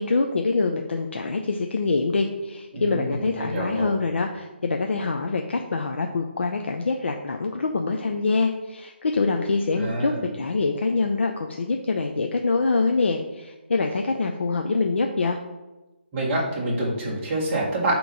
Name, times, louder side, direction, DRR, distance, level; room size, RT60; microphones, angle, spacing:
voice 1, 0.0-15.4, left 3 dB, 70° left, 3 dB, 0.5 m, -25 dB
voice 2, 2.7-3.9 9.7-10.3 16.1-18.0, right 1 dB, 15° right, -6 dB, 1.1 m, -27 dB
8.3 x 3.0 x 4.0 m, 1.1 s
hypercardioid pair, 175°, 6 cm